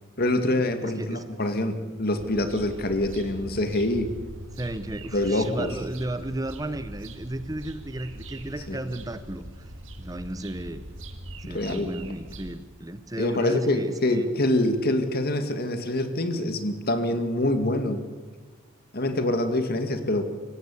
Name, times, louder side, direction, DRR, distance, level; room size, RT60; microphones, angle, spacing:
voice 1, 0.2-4.1 5.1-5.7 8.7-8.8 11.5-11.9 13.2-18.0 18.9-20.2, left 1 dB, 50° left, 8 dB, 1.9 m, -25 dB
voice 2, 0.8-1.3 4.6-9.7 10.0-10.8 11.5-14.3, right 1 dB, 20° right, 12 dB, 0.8 m, -34 dB
sound 1, 2.2-12.6, right 1 dB, 70° right, 2.1 m, -42 dB
25.5 x 16.0 x 8.3 m, 1.4 s
head